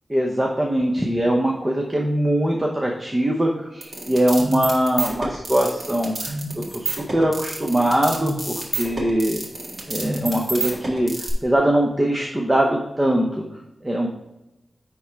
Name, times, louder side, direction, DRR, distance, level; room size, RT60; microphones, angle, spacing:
voice 1, 0.1-6.4 6.7-9.4 9.9-13.4 13.8-14.1, right 1 dB, 15° right, 0 dB, 0.8 m, -22 dB
sound 1, 3.8-11.3, right 3 dB, 45° right, 1.8 m, -29 dB
9.9 x 3.7 x 4.5 m, 0.94 s
wide cardioid pair, 135°, 0 cm